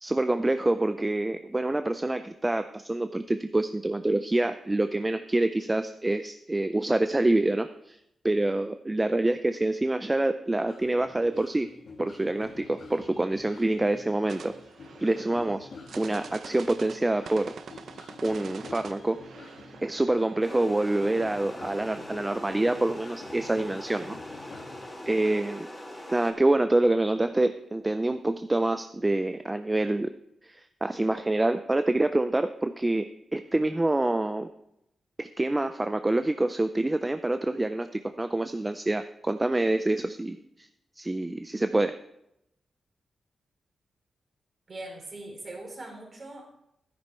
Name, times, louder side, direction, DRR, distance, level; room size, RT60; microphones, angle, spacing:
voice 1, 0.0-8.0 8.2-11.7 12.0-14.5 15.0-15.7 16.0-17.5 18.2-19.2 19.8-24.2 25.1-25.7 26.1-30.1 30.4-34.5 35.2-40.7 41.0-42.0, right 2 dB, 15° right, 9 dB, 0.4 m, -26 dB
sound 1, 10.7-25.3, left 4 dB, 60° left, 2.1 m, -48 dB
sound 2, 14.3-20.6, right 6 dB, 70° right, 0.6 m, -46 dB
sound 3, 20.4-26.3, left 1 dB, 10° left, 2.5 m, -42 dB
voice 2, 44.7-46.5, right 2 dB, 40° right, 1 dB, 3.5 m, -41 dB
12.5 x 10.5 x 4.4 m, 0.81 s
wide cardioid pair, 110°, 0 cm